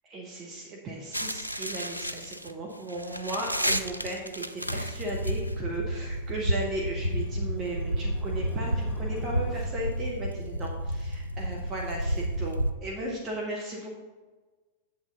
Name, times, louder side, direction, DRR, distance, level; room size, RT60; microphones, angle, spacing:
voice 1, 0.0-14.0, right 2 dB, 30° right, -1 dB, 1.4 m, -36 dB
sound 1, 1.1-12.7, equal, 90° left, 0.4 m, -31 dB
sound 2, 6.4-10.7, left 2 dB, 20° left, 1.0 m, -49 dB
8.0 x 7.9 x 3.8 m, 1.3 s
figure-of-eight pair, 90°, 0 cm